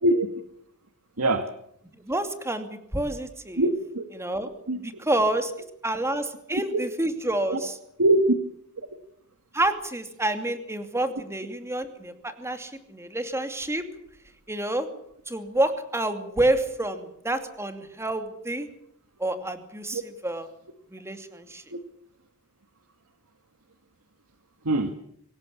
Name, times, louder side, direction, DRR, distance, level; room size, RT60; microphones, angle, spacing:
voice 1, 2.0-3.6 4.1-4.5 4.7-5.5 5.8-7.8 9.5-13.8 14.5-14.9 15.3-18.7 19.2-20.5 20.9-21.6, right 1 dB, 15° right, 8 dB, 2.6 m, -28 dB
voice 2, 3.6-4.1 4.7-4.8 6.7-6.8 7.5-7.6 8.0-8.3 19.9-20.0 21.7-21.8 24.6-25.0, right 1 dB, 90° right, 7 dB, 1.8 m, -22 dB
24.5 x 18.0 x 8.5 m, 0.72 s
head